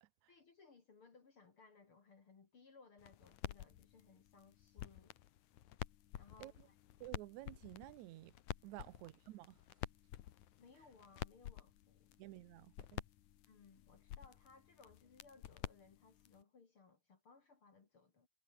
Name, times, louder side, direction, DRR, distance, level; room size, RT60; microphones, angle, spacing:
voice 1, 0.3-5.1 6.1-6.7 8.7-8.9 10.6-12.2 13.5-18.3, left 4 dB, 45° left, 3.2 m, -64 dB
sound 1, 3.0-16.4, left 12 dB, 70° left, 2.5 m, -50 dB
voice 2, 7.0-8.3 8.6-9.6 12.2-13.0, right 17 dB, 75° right, 2.0 m, -52 dB
omnidirectional pair, 3.7 m